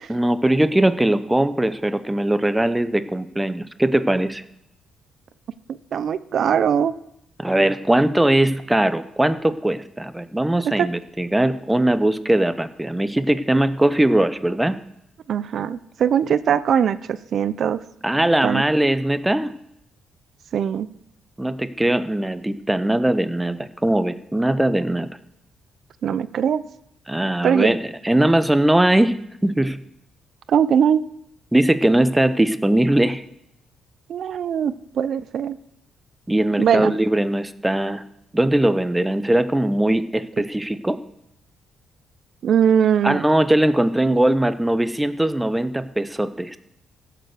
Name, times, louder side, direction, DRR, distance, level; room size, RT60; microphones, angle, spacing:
voice 1, 0.1-4.4 7.4-14.8 18.0-19.5 21.4-25.1 27.1-27.8 28.0-29.2 29.4-29.8 31.5-33.2 36.3-38.0 38.3-41.0 43.0-46.6, right 1 dB, 10° right, 12 dB, 0.7 m, -20 dB
voice 2, 5.9-7.0 10.6-10.9 15.3-17.8 18.4-18.6 20.5-20.9 26.0-26.6 27.4-27.7 30.5-31.1 34.1-35.6 36.6-36.9 42.4-43.2, right 8 dB, 60° right, 15 dB, 0.5 m, -20 dB
15.5 x 6.9 x 6.5 m, 0.80 s
cardioid pair, 90°, 0 cm